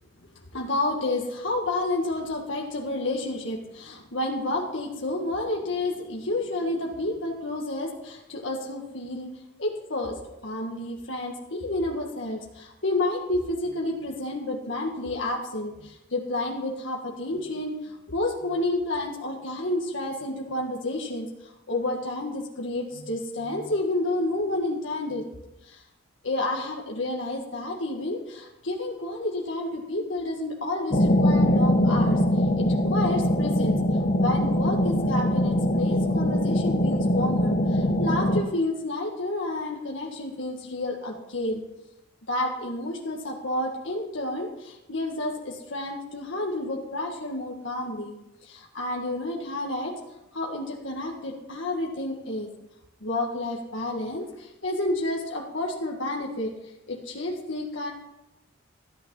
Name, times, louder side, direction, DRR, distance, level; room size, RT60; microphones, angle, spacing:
voice 1, 0.5-9.3 9.6-25.2 25.6-25.8 26.2-32.2 32.6-33.8 34.2-41.6 42.3-49.9 50.3-52.5 53.0-56.5 56.9-57.9, left 2 dB, 70° left, -1 dB, 1.7 m, -30 dB
sound 1, 30.9-38.4, left 1 dB, 40° left, 1.0 m, -22 dB
14.0 x 8.8 x 5.5 m, 0.90 s
head